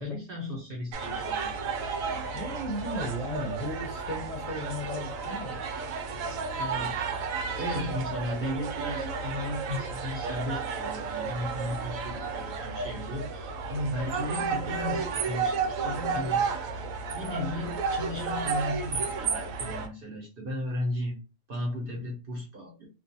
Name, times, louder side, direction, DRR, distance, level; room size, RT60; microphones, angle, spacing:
voice 1, 0.0-1.5 6.2-7.0 7.5-16.4 17.1-21.2 21.5-22.9, left 1 dB, 50° right, -1 dB, 0.9 m, -35 dB
sound 1, 0.9-19.9, right 5 dB, 90° right, 1.0 m, -32 dB
voice 2, 2.3-5.6, left 1 dB, 45° left, 2 dB, 0.6 m, -35 dB
2.4 x 2.4 x 2.7 m, 0.30 s
omnidirectional pair, 1.4 m